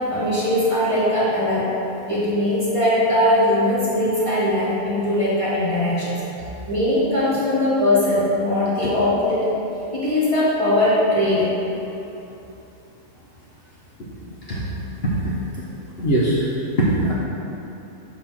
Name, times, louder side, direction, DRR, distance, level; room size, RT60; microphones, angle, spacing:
voice 1, 0.1-1.7 2.1-6.2 6.7-9.5 9.9-11.5, left 1 dB, 25° right, -9 dB, 1.2 m, -20 dB
voice 2, 16.0-16.5 16.8-17.1, right 1 dB, 50° left, -7 dB, 0.9 m, -20 dB
6.4 x 3.0 x 5.7 m, 2.9 s
omnidirectional pair, 1.6 m